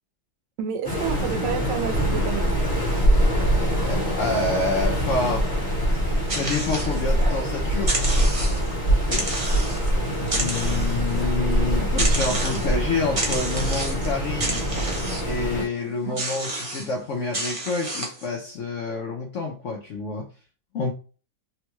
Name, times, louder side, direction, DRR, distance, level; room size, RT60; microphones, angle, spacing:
voice 1, 0.6-2.5 9.3-9.7 10.7-10.8 15.6-15.7 16.0-16.2, right 7 dB, 90° right, 1.2 m, -31 dB
Waves surf, 0.8-15.6, equal, 30° left, 0.9 m, -24 dB
voice 2, 3.9-5.5 6.3-8.0 8.9-9.4 10.3-14.6 15.2-20.3 20.7-20.9, left 3 dB, 80° left, 0.6 m, -28 dB
sound 1, 5.9-7.4 7.8-8.7 9.1-9.9 10.2-11.2 12.0-12.7 13.1-14.1 14.4-15.4 16.2-16.9 17.3-18.3, right 2 dB, 35° right, 0.5 m, -30 dB
3.5 x 2.2 x 2.9 m
omnidirectional pair, 1.9 m